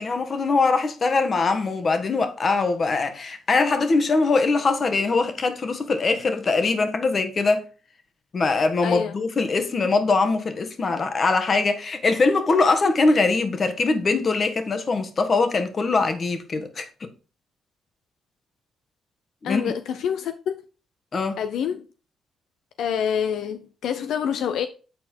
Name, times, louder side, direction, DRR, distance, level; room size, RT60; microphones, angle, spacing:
voice 1, 0.0-7.6 8.3-17.1 19.4-19.6 21.1-21.4, left 3 dB, 40° left, 1.4 m, -22 dB
voice 2, 8.8-9.1 19.4-20.5 21.4-21.9 22.8-24.7, left 8 dB, 75° left, 0.5 m, -26 dB
8.1 x 4.3 x 4.5 m
cardioid pair, 90°, 0 cm